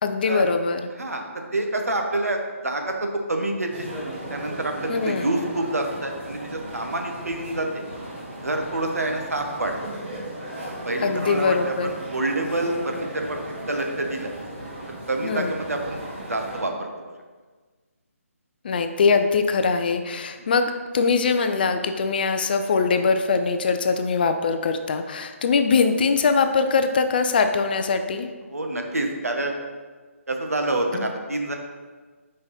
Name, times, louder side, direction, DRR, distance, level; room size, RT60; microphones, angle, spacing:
voice 1, 0.0-0.9 4.9-5.3 11.0-11.9 15.2-15.5 18.6-28.3 31.0-31.1, left 5 dB, 40° left, 7 dB, 0.4 m, -22 dB
voice 2, 1.0-3.9 4.3-7.8 8.4-9.7 10.8-11.5 11.8-14.3 15.1-16.0 16.3-16.9 20.4-20.5 28.5-29.5 30.3-31.5, right 2 dB, 80° right, 3 dB, 1.0 m, -27 dB
sound 1, 3.7-16.6, right 1 dB, 45° right, 1.8 m, -36 dB
5.1 x 4.8 x 4.1 m, 1.4 s
figure-of-eight pair, 145°, 8 cm